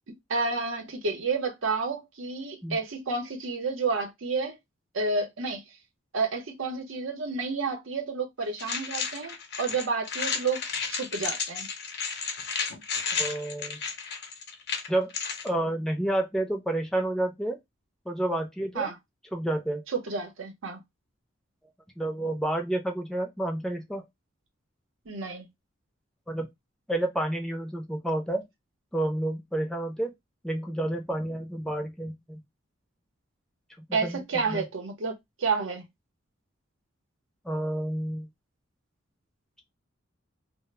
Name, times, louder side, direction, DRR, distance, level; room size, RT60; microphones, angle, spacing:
voice 1, 0.1-4.5 4.9-5.6 6.1-10.6 10.9-11.7 18.7-19.0 19.9-20.8 25.1-25.5 33.9-35.8, right 4 dB, 85° right, 0.7 m, -30 dB
sound 1, 8.6-15.5, left 5 dB, 60° left, 0.6 m, -32 dB
voice 2, 13.2-13.8 14.9-15.1 15.4-17.6 18.1-18.9 19.3-19.8 22.0-24.0 26.3-26.5 26.9-28.4 28.9-30.1 30.4-32.4 34.0-34.2 34.5-34.6 37.4-38.3, right 1 dB, 5° left, 0.4 m, -29 dB
2.0 x 2.0 x 3.1 m
head